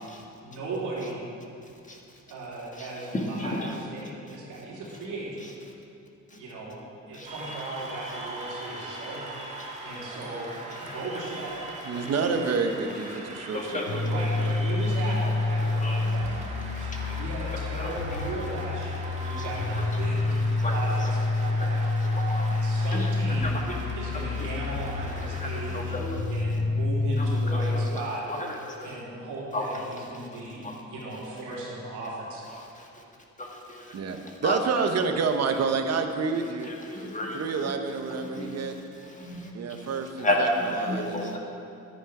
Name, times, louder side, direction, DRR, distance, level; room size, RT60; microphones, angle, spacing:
voice 1, 0.4-1.3 2.3-5.4 6.3-9.5 9.8-10.5 10.8-11.5 14.0-20.4 20.7-23.6 23.9-26.0 26.3-28.2 28.8-32.4, right 2 dB, 85° right, -5 dB, 3.1 m, -37 dB
voice 2, 3.1-3.7 7.1-7.3 10.9-11.0 12.0-12.1 13.5-14.0 15.8-16.0 17.1-17.2 17.8-17.9 19.2-19.8 20.6-20.7 22.3-22.6 22.9-23.1 23.4-23.8 24.4-24.5 25.2-26.2 27.2-27.6 28.8-28.9 29.5-29.6 30.6-30.7 33.4-34.9 36.7-37.4 38.3-38.5 39.2-39.5 40.2-41.4, left 1 dB, 25° left, 0 dB, 1.6 m, -32 dB
Cheering / Applause, 7.3-25.8, right 2 dB, 25° right, 1.9 m, -41 dB
voice 3, 11.8-14.5 33.9-37.1 37.3-38.7 39.5-41.4, right 5 dB, 55° right, 6 dB, 1.1 m, -29 dB
sound 1, 13.9-27.9, left 3 dB, 85° left, 1.0 m, -28 dB
10.5 x 9.3 x 4.9 m, 2.6 s
cardioid pair, 90°, 30 cm